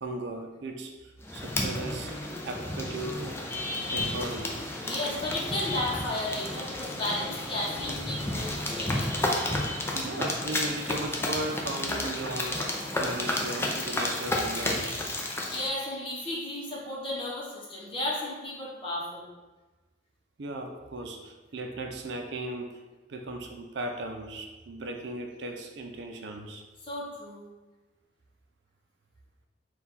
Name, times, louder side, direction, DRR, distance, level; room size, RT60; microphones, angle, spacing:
voice 1, 0.0-2.1 2.4-3.2 3.9-4.6 9.9-15.0 20.4-22.8 23.1-26.6, right 2 dB, 75° right, 4 dB, 0.5 m, -37 dB
sound 1, 1.2-15.7, left 1 dB, 15° left, 0.4 m, -32 dB
voice 2, 4.8-9.2 15.5-19.3 26.8-27.4, left 1 dB, 30° left, -6 dB, 0.9 m, -33 dB
4.2 x 2.3 x 4.1 m, 1.2 s
head